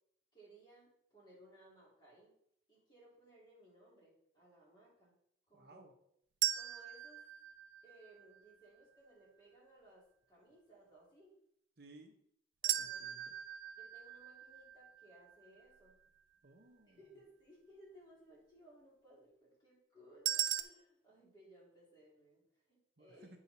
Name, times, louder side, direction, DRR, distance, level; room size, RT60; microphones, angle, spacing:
voice 1, 0.3-2.4 2.7-5.1 5.5-5.9 6.5-7.3 7.8-11.4 12.6-13.1 13.8-16.0 16.9-23.3, right 1 dB, 25° left, -6 dB, 3.0 m, -62 dB
voice 2, 5.5-5.9 11.8-12.2 12.8-13.3 16.4-17.0 23.0-23.4, right 2 dB, 55° right, 5 dB, 0.8 m, -59 dB
sound 1, 6.4-8.5 12.6-15.7 20.3-20.6, right 12 dB, 80° right, 0.4 m, -39 dB
8.4 x 4.8 x 4.2 m, 0.71 s
head